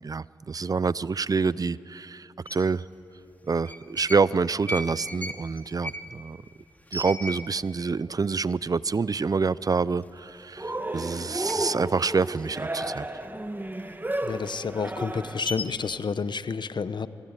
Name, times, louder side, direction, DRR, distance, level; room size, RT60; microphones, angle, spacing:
voice 1, 0.0-2.8 3.4-6.4 6.9-13.0, right 4 dB, 45° right, 19 dB, 0.5 m, -27 dB
sound 1, 2.5-2.6 3.5-4.3 4.6-7.8 8.1-8.2 8.5-9.0 9.4-9.6 9.9-10.7 10.9-13.3 13.7-16.0, left 1 dB, 20° left, 2.5 m, -37 dB
Cheering, 10.6-15.5, right 1 dB, 20° right, 1.6 m, -33 dB
voice 2, 14.2-17.1, left 5 dB, 60° left, 13 dB, 1.0 m, -30 dB
25.0 x 21.0 x 9.1 m, 2.8 s
cardioid pair, 45°, 9 cm